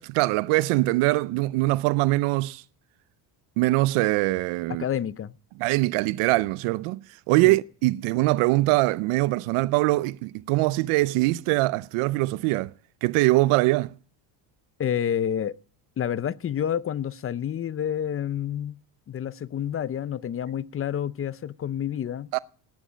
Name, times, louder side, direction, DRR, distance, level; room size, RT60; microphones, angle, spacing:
voice 1, 0.0-2.6 3.6-4.8 5.6-12.7 13.0-13.9 22.3-22.4, right 20 dB, 85° right, 0.6 m, -23 dB
voice 2, 4.8-5.4 7.4-7.5 14.8-15.5 16.0-18.8 19.1-22.3, left 9 dB, 30° left, 0.5 m, -29 dB
18.5 x 9.3 x 5.1 m
cardioid pair, 110°, 50 cm